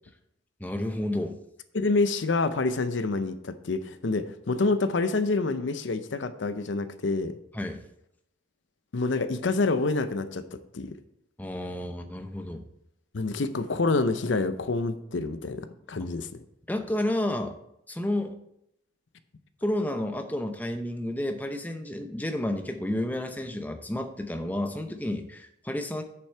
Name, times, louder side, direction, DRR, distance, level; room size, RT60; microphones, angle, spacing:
voice 1, 0.6-1.4 7.5-7.8 11.4-12.6 16.0-16.1 16.7-17.6 17.9-18.4 19.6-26.0, left 1 dB, 10° left, 6 dB, 0.7 m, -31 dB
voice 2, 1.7-7.3 8.9-10.9 13.1-16.4, left 3 dB, 85° left, 11 dB, 0.7 m, -27 dB
8.4 x 7.0 x 4.5 m, 0.77 s
head